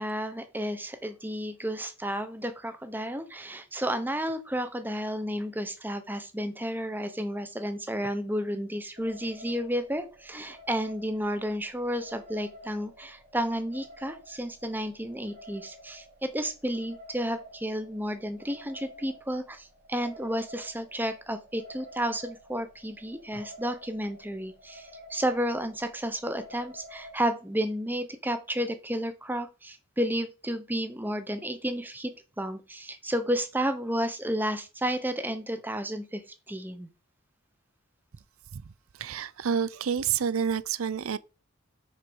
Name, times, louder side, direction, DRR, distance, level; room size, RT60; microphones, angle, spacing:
voice 1, 0.0-32.1 32.4-36.2 36.5-36.9, equal, 10° right, 0.8 m, -32 dB
sound 1, 9.0-27.2, equal, 40° right, 1.7 m, -50 dB
voice 2, 39.0-41.2, right 7 dB, 75° right, 0.5 m, -29 dB
6.5 x 4.8 x 6.1 m
head